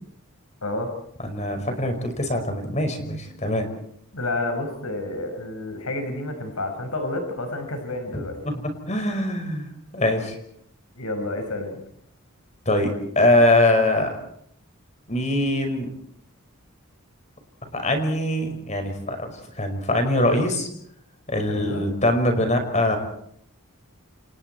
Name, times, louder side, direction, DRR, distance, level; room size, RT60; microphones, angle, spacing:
voice 1, 0.6-0.9 4.1-8.4 11.0-11.8 21.4-21.8, left 2 dB, 80° left, 5 dB, 5.8 m, -30 dB
voice 2, 1.2-3.7 8.1-8.6 8.9-10.4 12.7-14.1 15.1-15.9 17.7-19.3 19.6-20.7 21.3-23.0, left 1 dB, 30° left, 6 dB, 5.6 m, -23 dB
30.0 x 28.5 x 4.6 m, 0.68 s
head